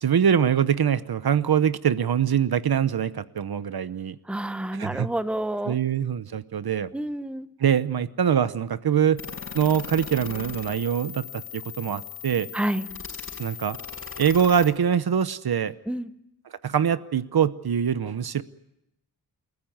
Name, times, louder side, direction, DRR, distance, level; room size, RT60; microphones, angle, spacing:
voice 1, 0.0-4.2 4.7-5.1 5.6-6.9 7.6-9.2 9.5-11.2 11.5-12.5 13.4-13.8 14.2-15.7 16.6-18.4, right 8 dB, 70° right, 15 dB, 0.9 m, -23 dB
voice 2, 4.3-5.8 6.9-7.5 12.5-12.9 15.9-16.1, right 1 dB, 5° right, 11 dB, 0.9 m, -29 dB
sound 1, 9.2-14.7, left 7 dB, 35° left, 5.0 m, -38 dB
28.0 x 15.0 x 9.1 m, 0.85 s
wide cardioid pair, 125°, 38 cm